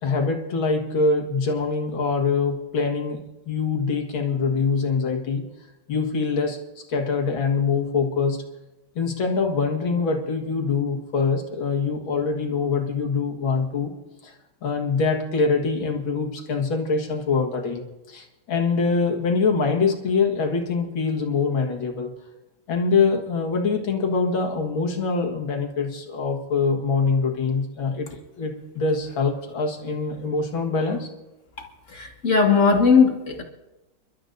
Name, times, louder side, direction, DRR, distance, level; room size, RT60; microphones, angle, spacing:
voice 1, 0.0-3.2 3.5-5.4 5.9-6.6 6.9-8.4 9.0-13.9 14.2-14.3 14.6-22.1 22.7-31.1, left 4 dB, 70° left, 2 dB, 2.4 m, -24 dB
voice 2, 31.9-33.4, left 5 dB, 40° left, 3 dB, 1.8 m, -18 dB
30.0 x 12.5 x 2.7 m, 1.0 s
omnidirectional pair, 2.2 m